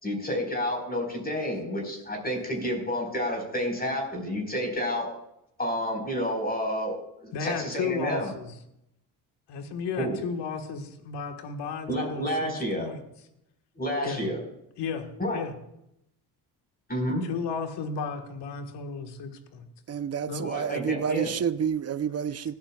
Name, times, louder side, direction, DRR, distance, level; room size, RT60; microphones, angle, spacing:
voice 1, 0.0-5.1 5.6-8.3 10.0-10.2 11.9-12.9 13.7-14.4 15.2-15.4 16.9-17.3 20.4-21.3, equal, 20° left, 4.6 m, -30 dB
voice 2, 7.3-8.5 9.5-13.0 14.0-14.3 14.8-15.1 15.3-15.5 17.2-19.6 20.3-20.4, left 6 dB, 70° left, 1.6 m, -34 dB
voice 3, 19.9-22.5, right 7 dB, 35° right, 0.7 m, -29 dB
18.5 x 12.5 x 2.4 m
supercardioid pair, 70°, 43 cm